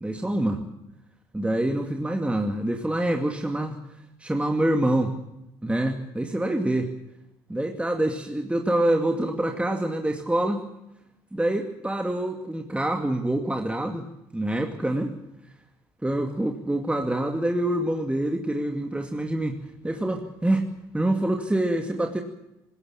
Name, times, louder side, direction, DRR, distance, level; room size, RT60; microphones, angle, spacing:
voice 1, 0.0-0.6 1.3-3.8 4.2-5.1 5.6-6.9 7.5-10.7 11.3-14.1 14.3-15.1 16.0-20.7 20.9-22.2, right 1 dB, 10° right, 3 dB, 2.4 m, -26 dB
20.5 x 18.0 x 8.7 m, 0.88 s
hypercardioid pair, 55°, 13 cm